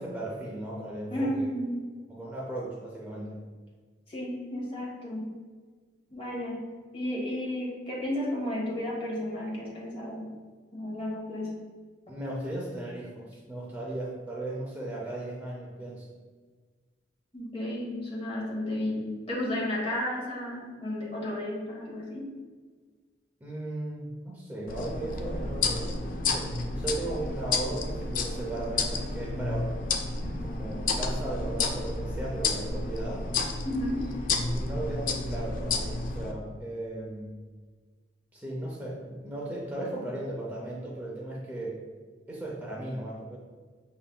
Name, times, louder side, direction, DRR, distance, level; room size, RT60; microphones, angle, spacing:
voice 1, 0.0-1.5 2.1-3.4 12.1-16.1 23.4-25.9 26.2-29.7 30.4-33.3 34.0-34.1 34.4-37.3 38.3-41.8 42.3-43.4, right 1 dB, 10° right, -4 dB, 0.5 m, -36 dB
voice 2, 1.1-1.9 4.1-5.3 6.1-6.7 6.9-10.3 10.7-11.5 17.3-22.3 33.6-34.0, left 1 dB, 30° left, -5 dB, 1.3 m, -33 dB
sound 1, 24.7-36.3, left 3 dB, 50° left, 0.4 m, -31 dB
5.4 x 3.7 x 2.2 m, 1.5 s
head